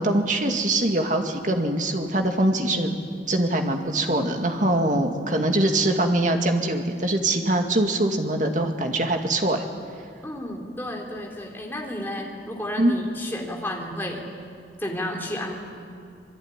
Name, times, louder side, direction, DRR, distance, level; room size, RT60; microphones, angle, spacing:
voice 1, 0.0-3.0 3.3-9.6 12.8-12.9, right 1 dB, 45° right, 4 dB, 2.3 m, -23 dB
voice 2, 4.9-5.2 10.2-14.2 14.8-15.5, left 1 dB, 10° left, -1 dB, 3.7 m, -32 dB
26.5 x 21.5 x 10.0 m, 2.4 s
head